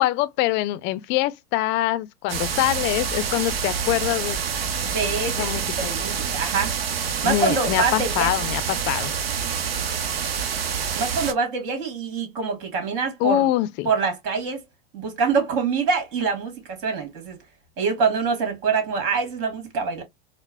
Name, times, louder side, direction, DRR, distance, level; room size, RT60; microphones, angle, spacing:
voice 1, 0.0-4.4 5.4-5.9 7.2-9.1 13.2-13.9, left 15 dB, 40° left, 0.4 m, -24 dB
sound 1, 2.3-11.3, right 7 dB, 90° right, 0.7 m, -27 dB
voice 2, 4.8-6.8 7.2-8.3 11.0-13.5 13.8-14.6 14.9-17.4 17.8-20.0, right 5 dB, 60° right, 1.7 m, -25 dB
4.5 x 2.1 x 2.3 m
hypercardioid pair, 105°, 29 cm